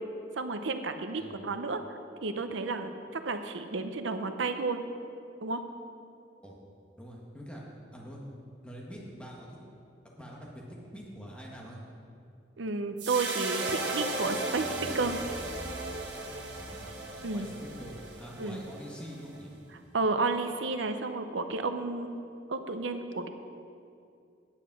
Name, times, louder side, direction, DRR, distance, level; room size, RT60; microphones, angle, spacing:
voice 1, 0.4-1.8 2.2-4.8 5.4-5.6 12.6-15.2 17.2-17.5 18.4-18.6 19.9-22.2 22.5-23.3, right 3 dB, 85° right, 8 dB, 0.7 m, -32 dB
voice 2, 7.0-7.6 7.9-8.2 8.6-9.5 10.2-11.8 16.6-19.5, equal, 5° left, -3 dB, 1.4 m, -45 dB
sound 1, 13.0-19.4, right 2 dB, 65° right, 1.6 m, -36 dB
9.7 x 8.2 x 6.0 m, 2.5 s
head